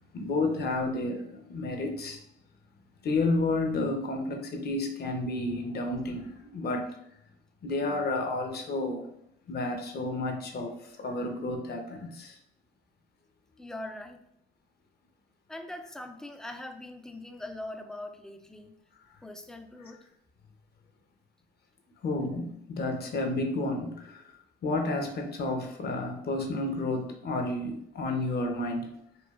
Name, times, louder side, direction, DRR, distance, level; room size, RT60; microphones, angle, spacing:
voice 1, 0.1-2.2 3.0-6.9 7.6-9.1 9.5-12.4 22.0-28.9, left 2 dB, 55° left, 4 dB, 0.7 m, -31 dB
voice 2, 13.6-14.2 15.5-18.7 19.2-20.0, left 1 dB, 5° left, 6 dB, 0.3 m, -41 dB
4.9 x 2.3 x 2.3 m, 0.76 s
cardioid pair, 90°, 20 cm